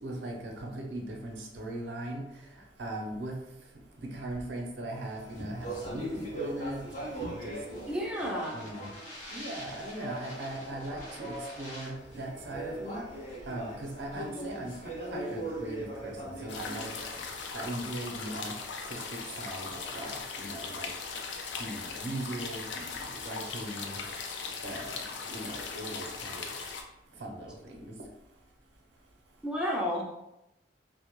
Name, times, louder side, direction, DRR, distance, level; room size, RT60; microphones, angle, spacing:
voice 1, 0.0-2.2 2.8-3.3 4.0-6.8 7.2-7.6 8.5-8.9 9.3-13.0 13.5-16.9 17.5-18.5 18.9-20.9 21.6-24.0 24.6-25.0 25.3-26.4 27.2-27.9, right 1 dB, 85° right, 1 dB, 0.5 m, -39 dB
Speech, 5.1-17.5, right 1 dB, 45° left, 0.8 m, -41 dB
voice 2, 7.9-8.6 14.2-14.5 29.4-30.2, equal, 5° right, -3 dB, 0.3 m, -32 dB
sound 1, 16.5-26.8, left 5 dB, 85° left, 0.4 m, -39 dB
2.1 x 2.1 x 2.9 m, 0.87 s
head